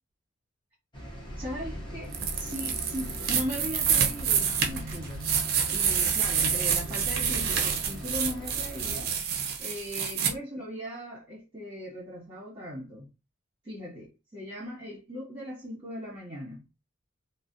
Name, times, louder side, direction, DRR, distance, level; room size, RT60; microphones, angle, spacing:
sound 1, 0.9-9.1, equal, 25° left, 0.7 m, -40 dB
voice 1, 1.4-5.3 5.7-9.1 9.6-13.1 13.6-16.6, equal, 25° right, 1.0 m, -38 dB
sound 2, 2.1-10.3, right 7 dB, 50° right, 0.5 m, -28 dB
2.4 x 2.0 x 2.5 m
head